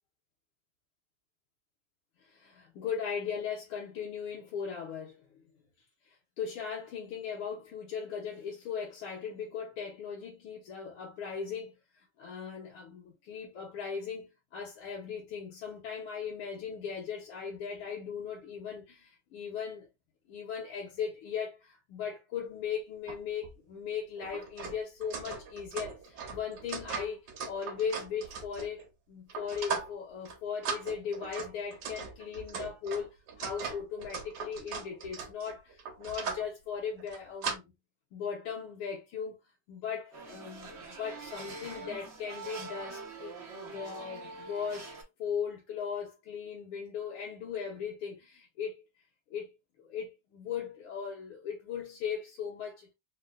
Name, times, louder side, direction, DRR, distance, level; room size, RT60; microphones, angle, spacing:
voice 1, 2.2-5.2 6.1-19.9 20.3-37.6 38.1-39.4 39.7-43.3 43.7-48.8 49.3-49.5 49.8-52.9, left 7 dB, 80° left, 1.8 m, -38 dB
sound 1, 23.1-23.2 23.4-23.5 24.2-28.9 29.3-30.0 30.3-30.4 30.6-36.5 37.0-37.6, right 5 dB, 65° right, 1.1 m, -39 dB
sound 2, 40.1-45.0, right 3 dB, 80° right, 0.6 m, -44 dB
4.2 x 2.2 x 2.3 m
omnidirectional pair, 2.4 m